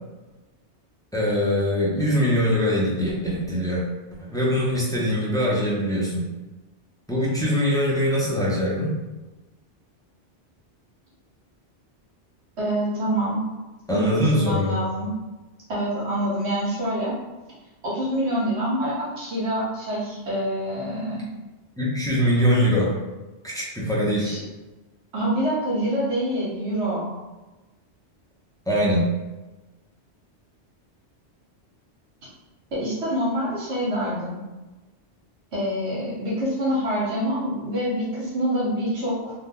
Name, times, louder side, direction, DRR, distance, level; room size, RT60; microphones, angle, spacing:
voice 1, 1.1-3.8 4.2-6.3 7.1-9.0 13.9-14.8 21.8-23.0 23.4-24.4 28.7-29.1, equal, 5° left, -6 dB, 0.5 m, -22 dB
voice 2, 12.6-13.4 13.9-15.1 15.7-17.2 17.8-21.2 24.2-24.4 25.1-27.1 32.7-34.4 35.5-39.3, equal, 75° right, -7 dB, 1.2 m, -26 dB
2.7 x 2.2 x 3.6 m, 1.1 s
omnidirectional pair, 1.1 m